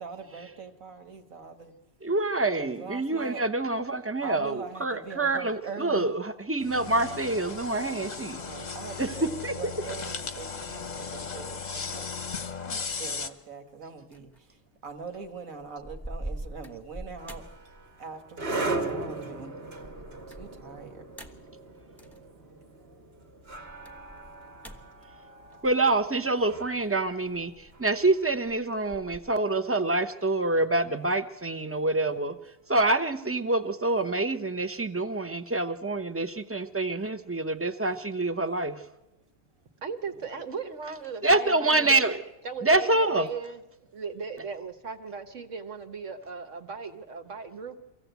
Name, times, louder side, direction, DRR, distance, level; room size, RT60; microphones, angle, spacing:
voice 1, 0.0-1.7 2.6-3.4 4.2-6.1 8.4-17.4 18.0-19.9 20.3-21.3 21.8-21.9 22.8-22.9 23.3-23.7 40.1-40.3, right 5 dB, 85° right, 6 dB, 2.0 m, -42 dB
voice 2, 2.0-8.4 9.0-9.6 25.6-32.3 32.7-38.8 41.2-42.2 42.6-43.3, right 2 dB, 15° right, 10 dB, 0.6 m, -26 dB
sound 1, 6.6-13.3, left 5 dB, 35° left, 0.9 m, -36 dB
sound 2, 14.1-14.4 14.9-15.3 15.6-18.1 18.5-18.8 19.7-22.3 23.5-26.1 27.2-28.1 28.4-29.4, right 1 dB, ahead, 1.1 m, -44 dB
sound 3, 17.2-28.3, right 2 dB, 50° right, 1.5 m, -38 dB
voice 3, 39.8-42.0 42.4-43.6 43.9-47.8, right 5 dB, 65° right, 6 dB, 1.6 m, -37 dB
23.5 x 16.0 x 8.1 m, 1.0 s
omnidirectional pair, 1.4 m